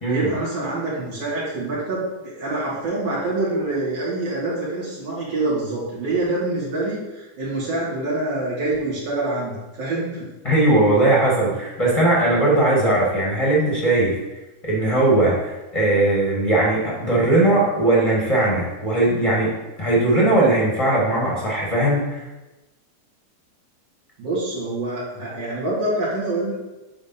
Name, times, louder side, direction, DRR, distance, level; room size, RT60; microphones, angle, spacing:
voice 1, 0.1-10.3 24.2-26.5, right 2 dB, 55° right, -8 dB, 3.0 m, -26 dB
voice 2, 10.4-14.2 14.6-19.5 19.8-22.2, right 2 dB, 60° left, -4 dB, 0.3 m, -19 dB
8.8 x 3.8 x 4.1 m, 1.0 s
omnidirectional pair, 3.7 m